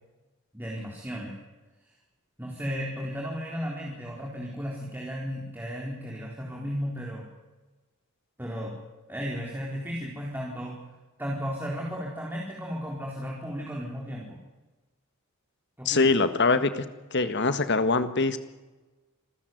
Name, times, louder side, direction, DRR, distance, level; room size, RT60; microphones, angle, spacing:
voice 1, 0.5-1.3 2.4-7.3 8.4-8.8 9.1-10.8 11.2-14.4 15.8-16.1, equal, 10° right, -2 dB, 4.3 m, -34 dB
voice 2, 15.8-16.9 17.1-18.4, left 3 dB, 50° left, 11 dB, 1.7 m, -23 dB
27.5 x 14.5 x 9.4 m, 1.2 s
head